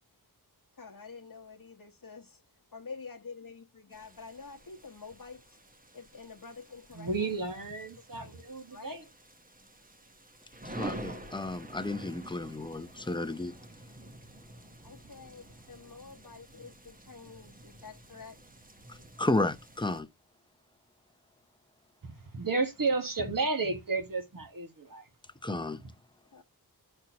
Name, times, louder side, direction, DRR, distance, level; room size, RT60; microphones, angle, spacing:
voice 1, 0.7-5.6 5.9-7.3 7.6-9.1 14.8-18.4 26.3-26.4, left 4 dB, 60° left, 1.1 m, -48 dB
sound 1, 3.9-20.0, right 1 dB, 20° right, 1.0 m, -48 dB
voice 2, 6.9-9.0 22.0-25.1 25.5-25.9, right 3 dB, 55° right, 1.7 m, -33 dB
voice 3, 10.6-13.6 18.9-20.1 25.4-25.8, left 2 dB, 10° left, 0.6 m, -32 dB
12.0 x 4.5 x 2.8 m
wide cardioid pair, 70°, 39 cm